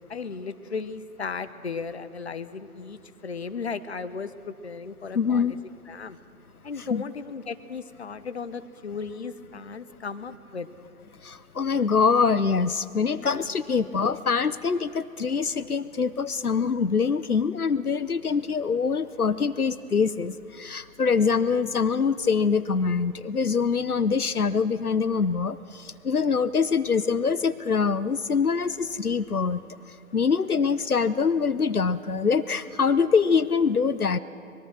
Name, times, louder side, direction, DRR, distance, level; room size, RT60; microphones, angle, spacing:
voice 1, 0.1-5.6 5.9-6.2 6.6-10.7, left 5 dB, 50° left, 12 dB, 1.1 m, -35 dB
voice 2, 5.1-5.5 6.9-7.0 11.2-29.6 30.1-34.2, left 5 dB, 85° left, 15 dB, 0.8 m, -24 dB
24.5 x 21.5 x 6.3 m, 2.5 s
figure-of-eight pair, 145°, 43 cm